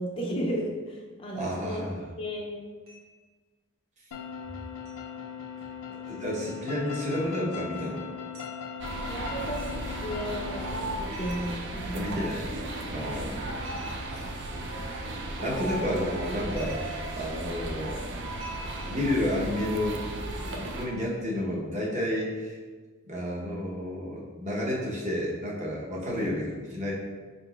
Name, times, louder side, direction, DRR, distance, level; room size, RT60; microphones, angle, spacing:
voice 1, 0.0-1.8 2.2-2.7 9.0-12.2, equal, 25° left, -1 dB, 0.4 m, -34 dB
voice 2, 1.3-2.0 6.1-8.0 11.9-12.5 12.9-13.5 14.1-14.3 15.4-16.8 17.1-18.0 18.8-22.6 23.1-26.9, left 1 dB, 35° right, -4 dB, 0.8 m, -31 dB
sound 1, 2.9-3.2 4.8-5.0 6.4-6.6 7.7-7.9 8.3-8.6 9.5-10.0 11.1-12.2 13.6-14.5 16.1-17.3 18.4-19.2 20.5-21.0, equal, 80° right, 1.0 m, -50 dB
sound 2, 4.1-11.0, left 7 dB, 90° left, 0.4 m, -39 dB
sound 3, 8.8-20.9, right 2 dB, 55° right, 0.4 m, -35 dB
4.3 x 3.9 x 2.3 m, 1.4 s
head